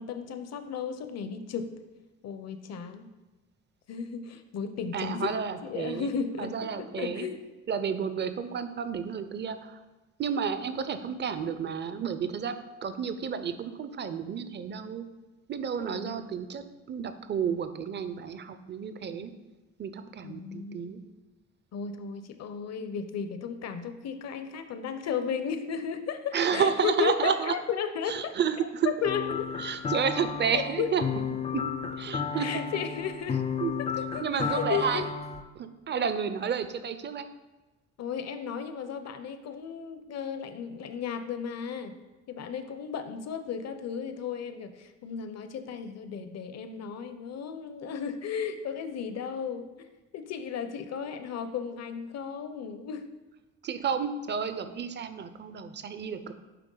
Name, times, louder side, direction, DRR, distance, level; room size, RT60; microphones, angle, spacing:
voice 1, 0.0-1.7 2.2-3.1 3.9-5.3 5.6-7.4 15.8-16.3 20.2-21.1 21.7-28.3 28.8-29.5 30.5-30.9 32.3-33.4 34.0-35.1 38.0-42.0 42.3-49.7 50.1-53.1, left 7 dB, 60° left, 10 dB, 0.6 m, -34 dB
voice 2, 4.9-6.1 6.4-7.3 7.7-9.8 10.2-12.5 12.8-15.1 15.5-19.3 19.8-21.0 26.3-27.5 28.1-28.9 29.6-31.0 31.5-31.6 32.0-32.6 33.6-33.7 34.2-35.0 35.6-37.3 53.6-56.3, right 7 dB, 35° right, 10 dB, 0.5 m, -31 dB
sound 1, 29.0-35.4, left 6 dB, 20° left, 0.3 m, -33 dB
9.2 x 3.4 x 3.8 m, 1.1 s
cardioid pair, 90°, 30 cm